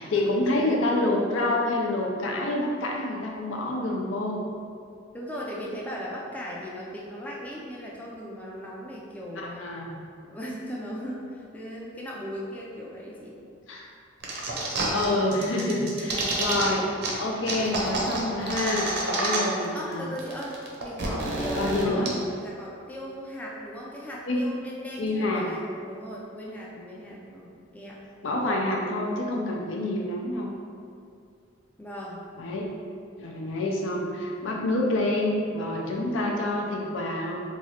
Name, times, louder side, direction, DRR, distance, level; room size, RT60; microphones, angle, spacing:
voice 1, 0.0-4.4 9.4-10.0 13.7-13.9 14.9-20.1 21.5-22.1 24.3-24.4 25.0-25.5 28.2-30.5 32.4-32.7 33.2-37.4, left 1 dB, 75° left, -1 dB, 0.5 m, -27 dB
voice 2, 5.1-9.7 10.3-13.4 16.0-16.3 19.7-22.1 22.4-28.0 31.8-32.3, equal, 10° left, -4 dB, 0.4 m, -38 dB
sound 1, 14.2-15.1 15.3-16.7 17.0-17.1 17.5-19.7 19.9-20.0 20.2-22.1, right 2 dB, 60° right, 0.6 m, -28 dB
3.0 x 2.4 x 4.2 m, 2.4 s
head